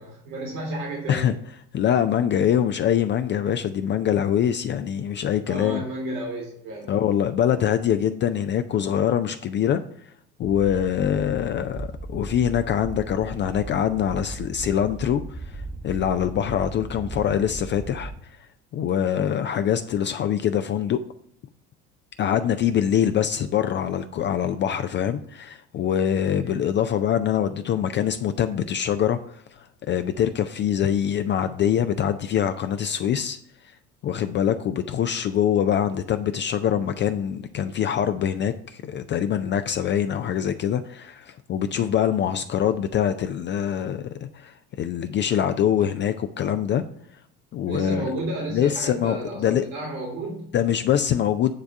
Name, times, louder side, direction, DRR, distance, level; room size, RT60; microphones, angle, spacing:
voice 1, 0.0-1.3 5.4-6.9 26.3-26.5 47.7-50.5, right 1 dB, 70° right, -2 dB, 2.4 m, -32 dB
voice 2, 1.7-5.8 6.9-9.8 10.4-15.2 15.5-18.1 18.7-21.0 22.2-29.6 29.9-33.4 34.0-46.8 47.5-48.1 48.5-49.7 50.5-51.5, left 9 dB, 25° left, 9 dB, 0.3 m, -24 dB
sound 1, 10.4-18.2, right 2 dB, 5° right, 0.9 m, -37 dB
9.5 x 3.5 x 6.4 m, 0.70 s
figure-of-eight pair, 65°, 45 cm